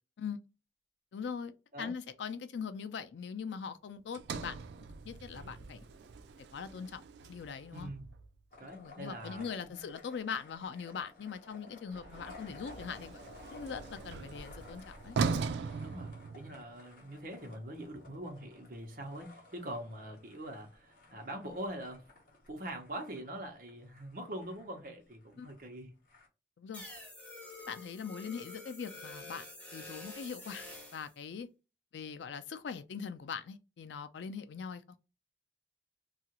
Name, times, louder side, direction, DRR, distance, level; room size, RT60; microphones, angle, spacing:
voice 1, 1.1-4.6 5.0-5.8 6.5-7.9 8.8-13.2 13.5-15.2 25.4-25.5 26.6-26.8 27.7-29.5 29.7-30.7 30.9-31.5 31.9-34.8, left 6 dB, 85° left, 0.4 m, -41 dB
Sliding door, 4.1-8.4 11.9-16.8, right 5 dB, 80° right, 0.3 m, -40 dB
voice 2, 7.7-8.1 8.6-9.8 15.8-22.0 22.5-25.9, right 1 dB, 50° right, 0.7 m, -43 dB
sound 1, 8.5-26.3, left 3 dB, 50° left, 0.9 m, -56 dB
sound 2, 26.7-31.1, left 2 dB, 10° left, 0.6 m, -48 dB
2.8 x 2.4 x 2.9 m
head